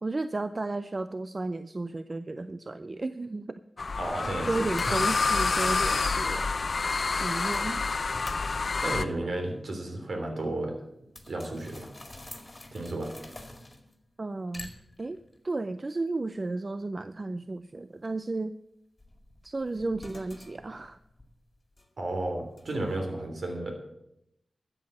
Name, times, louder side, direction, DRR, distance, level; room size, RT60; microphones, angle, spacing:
voice 1, 0.0-3.6 4.5-6.5 7.2-7.8 14.2-14.7 15.0-15.2 15.4-18.5 19.4-21.0, right 2 dB, 40° right, 12 dB, 0.5 m, -33 dB
sound 1, 3.8-9.0, left 4 dB, 60° left, 0.7 m, -28 dB
voice 2, 4.0-4.9 8.8-10.7 11.3-11.9 12.7-13.1 22.0-23.7, right 2 dB, 70° right, 3 dB, 3.3 m, -33 dB
sound 2, 6.4-6.7 7.0-7.1 7.5-8.9 11.2-14.1 14.5-15.4 19.0-22.1 22.6-23.0, left 1 dB, 25° left, 2.1 m, -47 dB
13.0 x 7.8 x 7.3 m, 0.82 s
wide cardioid pair, 70°, 0 cm